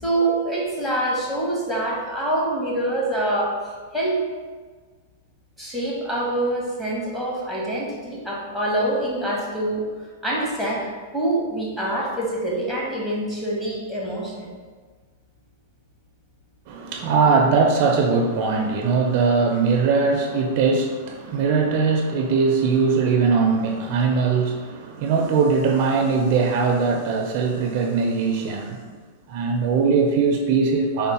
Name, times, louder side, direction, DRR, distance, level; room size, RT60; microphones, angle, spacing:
voice 1, 0.0-3.6 3.9-4.2 5.6-9.9 10.2-14.5, right 1 dB, 5° left, -5 dB, 0.8 m, -25 dB
voice 2, 16.7-28.8 29.3-31.1, right 4 dB, 50° right, 2 dB, 0.4 m, -20 dB
3.7 x 2.0 x 4.2 m, 1.5 s
supercardioid pair, 145°, 0 cm